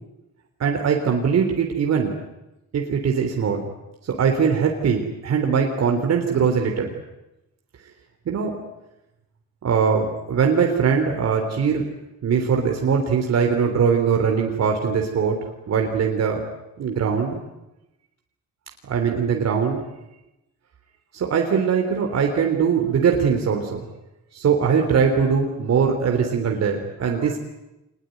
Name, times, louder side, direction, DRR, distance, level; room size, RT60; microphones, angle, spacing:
voice 1, 0.6-2.2 2.7-3.7 4.0-7.0 8.3-8.5 9.6-11.9 12.2-15.4 15.7-16.4 16.8-17.4 18.9-19.8 21.1-23.8 24.3-27.4, right 6 dB, 60° right, 3 dB, 3.6 m, -21 dB
25.5 x 20.5 x 9.3 m, 0.96 s
cardioid pair, 90°, 30 cm